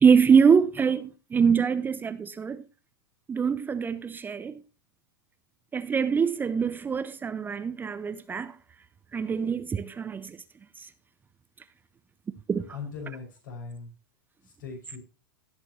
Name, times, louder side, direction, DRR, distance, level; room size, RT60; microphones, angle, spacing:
voice 1, 0.0-2.6 3.3-4.6 5.7-8.5 9.1-10.4 12.5-12.6, right 6 dB, 15° right, 0.6 m, -24 dB
voice 2, 12.7-13.9 14.4-15.0, left 5 dB, 65° left, 5.8 m, -40 dB
17.5 x 6.4 x 3.0 m
hypercardioid pair, 100°, 11 cm